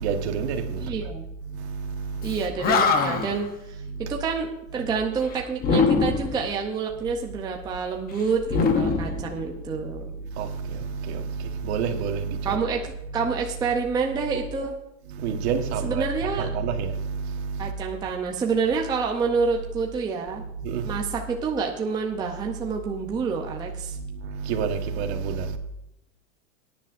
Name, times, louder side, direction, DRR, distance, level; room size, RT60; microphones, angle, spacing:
voice 1, 0.0-0.9 1.4-2.3 3.8-4.1 4.8-4.9 9.7-9.8 10.3-12.6 13.1-13.3 15.1-17.7 20.3-21.0 23.9-25.6, right 6 dB, 50° right, 1.4 m, -29 dB
voice 2, 0.9-1.3 2.2-10.1 12.4-14.8 15.8-16.5 17.6-20.4 20.8-24.0, right 5 dB, 10° right, 0.6 m, -28 dB
Animal, 2.3-2.4 2.6-3.4 5.6-6.5 8.5-9.8, left 4 dB, 20° left, 0.8 m, -22 dB
18.5 x 10.0 x 2.6 m
supercardioid pair, 150°, 41 cm